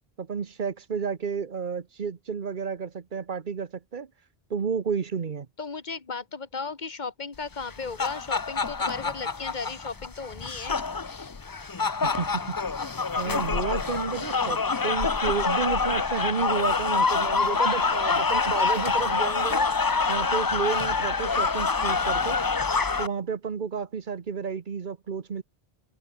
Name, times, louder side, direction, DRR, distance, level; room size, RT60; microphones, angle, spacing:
voice 1, 0.2-4.1 4.5-5.5 12.0-12.9 13.2-19.7 20.1-22.4 23.0-25.4, right 6 dB, 50° right, 1.1 m, -31 dB
voice 2, 5.6-10.8 20.2-20.3, left 4 dB, 45° left, 1.9 m, -35 dB
sound 1, 7.6-23.1, left 4 dB, 25° left, 0.5 m, -26 dB
omnidirectional pair, 1.1 m